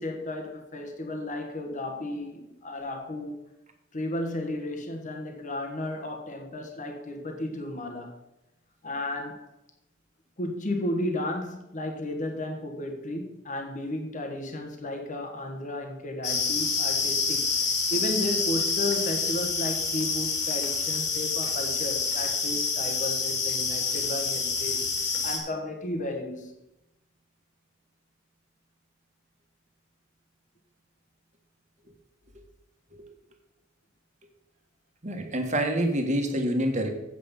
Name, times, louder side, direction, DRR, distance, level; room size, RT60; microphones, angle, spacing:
voice 1, 0.0-3.4 3.9-8.2 8.8-9.4 10.4-26.6, left 1 dB, 40° left, 1.3 m, -34 dB
sound 1, 16.2-25.4, left 4 dB, 65° left, 2.1 m, -27 dB
voice 2, 35.0-36.9, right 1 dB, 40° right, 1.6 m, -27 dB
8.1 x 7.6 x 5.3 m
head